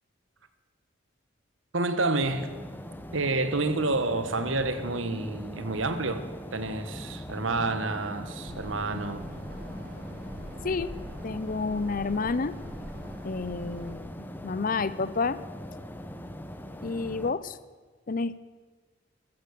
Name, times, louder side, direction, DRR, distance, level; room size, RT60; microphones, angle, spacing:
voice 1, 1.7-2.5 3.1-6.2 6.5-9.2, right 2 dB, 85° right, 10 dB, 1.5 m, -29 dB
sound 1, 2.2-17.3, equal, 10° left, 0.9 m, -41 dB
sound 2, 8.4-14.0, equal, 50° right, 2.5 m, -44 dB
voice 2, 11.2-12.5 13.2-14.1 14.4-15.4 16.8-17.6 18.1-18.4, left 4 dB, 45° left, 16 dB, 0.6 m, -29 dB
15.0 x 14.0 x 6.7 m, 1.4 s
head